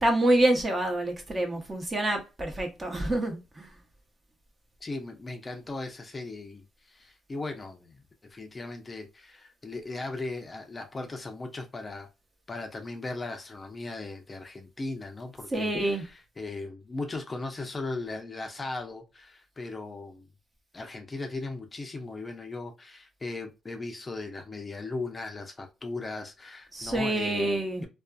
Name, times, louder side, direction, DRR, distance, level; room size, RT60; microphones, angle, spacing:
voice 1, 0.0-3.7 15.5-16.0 26.7-27.8, right 1 dB, 25° right, 0.8 m, -27 dB
voice 2, 4.8-12.1 12.5-20.3 20.7-27.5, left 3 dB, 25° left, 0.5 m, -38 dB
2.5 x 2.3 x 2.2 m
cardioid pair, 90°, 0 cm